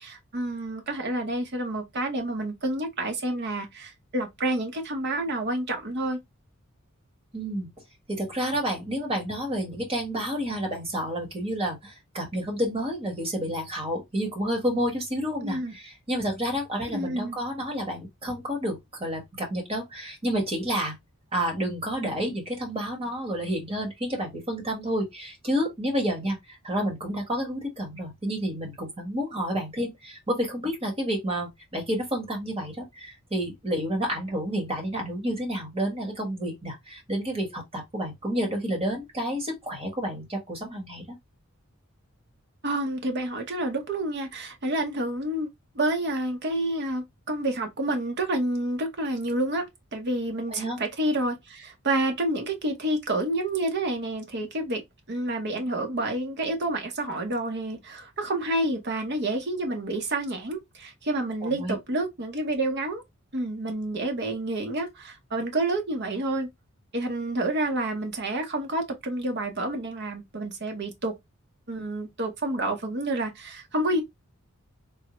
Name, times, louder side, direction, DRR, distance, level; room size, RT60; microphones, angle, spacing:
voice 1, 0.0-6.2 15.4-15.7 16.9-17.4 42.6-45.5 45.7-49.7 49.9-54.8 55.1-63.0 63.3-66.5 66.9-71.2 71.7-74.0, right 1 dB, 50° right, 0.8 m, -29 dB
voice 2, 7.3-7.7 8.1-21.0 21.3-41.2 50.5-50.8 61.4-61.7, equal, 25° right, 1.3 m, -30 dB
3.6 x 2.1 x 3.0 m
head